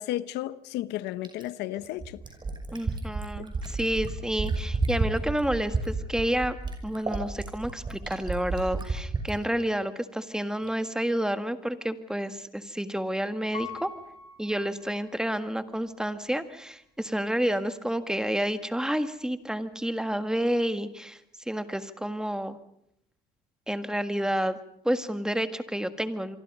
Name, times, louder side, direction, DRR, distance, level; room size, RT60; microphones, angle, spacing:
voice 1, 0.0-2.2, left 14 dB, 90° left, 0.9 m, -33 dB
Fill (with liquid), 1.2-9.4 10.7-10.8, right 3 dB, 25° right, 5.8 m, -30 dB
voice 2, 2.7-6.6 6.8-13.9 14.4-21.2 21.5-22.6 23.7-24.6 24.9-26.4, equal, 5° right, 1.7 m, -29 dB
Piano, 13.5-15.5 16.1-16.2, left 5 dB, 30° left, 5.9 m, -43 dB
27.5 x 24.0 x 5.5 m
cardioid pair, 110°, 17 cm